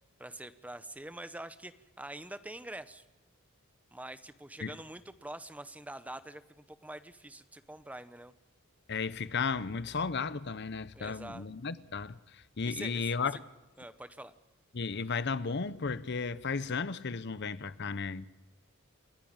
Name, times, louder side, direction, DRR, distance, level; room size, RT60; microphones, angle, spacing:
voice 1, 0.2-3.0 3.9-8.3 10.9-11.5 12.6-13.1 13.8-14.3, right 1 dB, 5° right, 0.8 m, -45 dB
voice 2, 8.9-13.3 14.7-18.3, left 5 dB, 50° left, 0.7 m, -34 dB
29.0 x 10.5 x 8.8 m
head